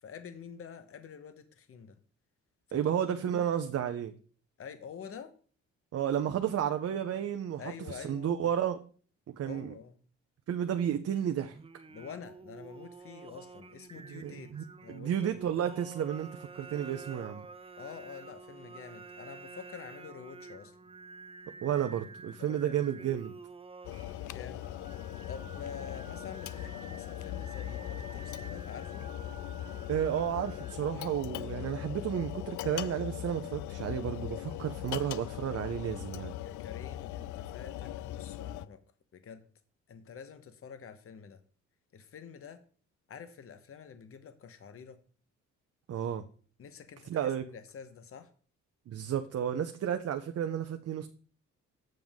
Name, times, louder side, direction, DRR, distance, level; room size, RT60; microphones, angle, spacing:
voice 1, 0.0-2.0 2.7-3.4 4.6-5.3 7.6-8.5 9.4-10.0 11.9-15.4 17.8-20.8 22.4-23.1 24.3-24.7 25.3-29.1 36.4-38.8 39.1-39.5 39.9-41.4 41.9-42.6 43.1-45.0 46.6-48.3, left 7 dB, 45° left, 10 dB, 1.0 m, -47 dB
voice 2, 2.7-4.1 5.9-7.6 7.9-8.8 9.3-9.7 10.5-11.6 14.1-17.5 21.6-23.3 29.9-36.3 45.9-46.2 47.1-47.4 48.9-51.1, right 9 dB, 55° right, 7 dB, 0.7 m, -32 dB
Singing, 11.5-31.1, right 4 dB, 20° right, 0.5 m, -50 dB
sound 1, 23.8-38.7, left 13 dB, 75° left, 0.5 m, -40 dB
7.7 x 7.0 x 3.6 m, 0.43 s
cardioid pair, 90°, 30 cm